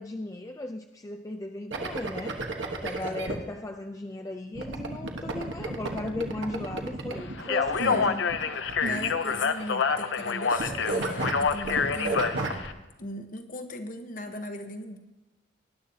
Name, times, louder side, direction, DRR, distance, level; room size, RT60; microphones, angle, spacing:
voice 1, 0.0-2.4 2.8-8.3, left 1 dB, 20° left, 4 dB, 0.4 m, -36 dB
sound 1, 1.7-3.3 4.6-9.6 9.9-10.2 10.5-12.7, right 2 dB, 75° right, 1.2 m, -33 dB
voice 2, 2.9-3.3 7.7-8.1 8.8-12.5 13.0-15.0, left 1 dB, 45° left, 6 dB, 1.0 m, -38 dB
Speech, 7.4-12.7, left 5 dB, 70° left, 0.6 m, -27 dB
19.0 x 11.0 x 2.8 m, 1.0 s
head